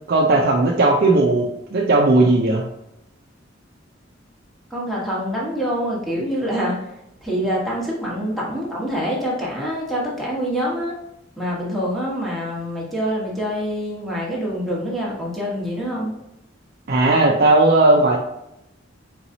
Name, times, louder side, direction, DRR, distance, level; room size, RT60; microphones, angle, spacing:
voice 1, 0.1-2.6 16.9-18.2, right 2 dB, 55° right, -1 dB, 0.5 m, -16 dB
voice 2, 4.7-6.9 7.2-10.9 11.4-16.1, equal, ahead, -5 dB, 1.3 m, -25 dB
4.5 x 4.0 x 2.7 m, 0.87 s
head